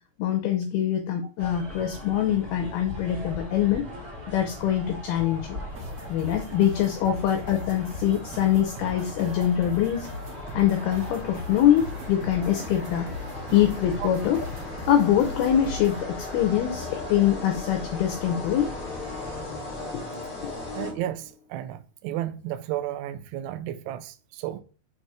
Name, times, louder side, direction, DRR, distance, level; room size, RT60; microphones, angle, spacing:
voice 1, 0.2-3.9 4.3-5.6 6.1-10.1 10.5-13.2 13.5-14.4 14.9-18.7, left 11 dB, 80° left, 2.4 m, -24 dB
sound 1, 1.4-19.4, left 1 dB, 45° right, 1.1 m, -41 dB
sound 2, 4.6-21.4, left 2 dB, 55° left, 0.6 m, -39 dB
sound 3, 5.7-16.0, left 1 dB, 65° right, 1.9 m, -40 dB
voice 2, 20.7-24.6, right 13 dB, 85° right, 2.4 m, -33 dB
6.6 x 4.1 x 4.9 m
omnidirectional pair, 5.1 m